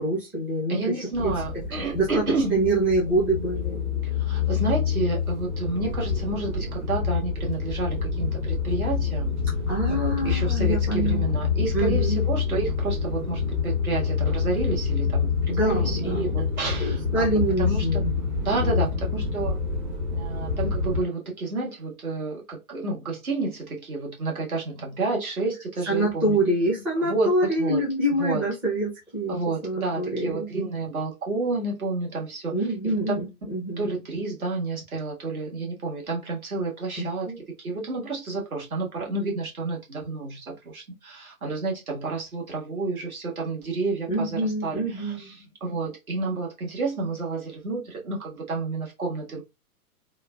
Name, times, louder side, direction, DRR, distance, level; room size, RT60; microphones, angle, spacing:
voice 1, 0.0-0.8 1.2-1.3 1.9-4.0 9.7-12.2 15.5-16.4 16.8-18.2 18.6-18.9 25.9-29.4 29.6-30.5 32.5-33.9 37.0-37.4 44.1-45.3, right 1 dB, 5° right, 0.6 m, -26 dB
voice 2, 0.7-2.5 4.0-9.4 9.9-17.3 17.6-18.0 18.4-19.6 20.1-26.4 27.0-27.8 28.2-28.4 29.3-32.5 32.8-33.2 33.8-37.3 37.6-49.4, right 3 dB, 70° right, 1.6 m, -30 dB
sound 1, 1.1-21.0, left 6 dB, 30° right, 0.8 m, -27 dB
3.1 x 2.2 x 2.3 m
figure-of-eight pair, 120°, 44 cm